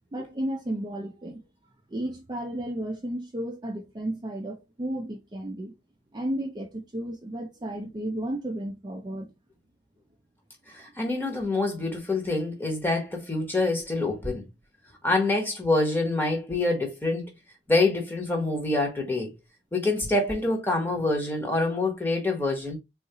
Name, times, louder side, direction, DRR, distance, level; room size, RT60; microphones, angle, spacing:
voice 1, 0.1-1.4 1.9-5.7 6.1-9.3, right 1 dB, 20° right, 0.4 m, -33 dB
voice 2, 10.7-14.4 15.0-17.3 17.7-19.3 19.7-22.8, left 2 dB, 10° left, 0.9 m, -26 dB
3.7 x 2.4 x 2.7 m
head